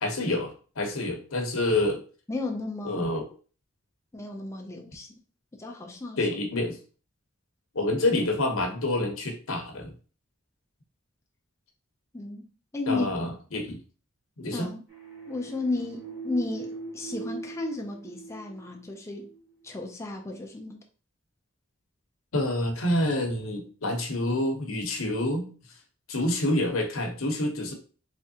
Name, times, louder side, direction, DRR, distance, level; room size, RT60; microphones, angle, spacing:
voice 1, 0.0-2.0 2.8-3.3 6.2-6.8 7.7-9.9 12.9-13.8 14.4-14.7 22.3-25.5 26.1-27.7, left 1 dB, 75° left, 0.9 m, -27 dB
voice 2, 2.3-3.1 4.1-5.1 5.5-6.3 12.1-12.5 12.7-13.4 14.5-14.8 15.3-19.3 19.6-20.8, left 2 dB, 15° left, 0.4 m, -34 dB
sound 1, 14.9-19.4, right 3 dB, 20° right, 1.9 m, -41 dB
3.6 x 3.2 x 2.8 m
head